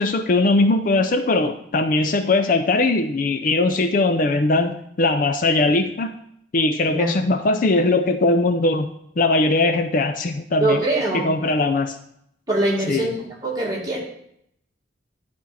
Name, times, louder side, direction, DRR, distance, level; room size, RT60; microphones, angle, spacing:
voice 1, 0.0-6.1 6.5-8.9 9.2-10.8 11.1-12.0 12.9-13.1, left 2 dB, 45° left, 8 dB, 0.4 m, -20 dB
voice 2, 10.6-11.3 12.5-13.1 13.4-14.0, right 2 dB, 20° right, -4 dB, 2.1 m, -22 dB
10.5 x 4.4 x 4.1 m, 0.73 s
head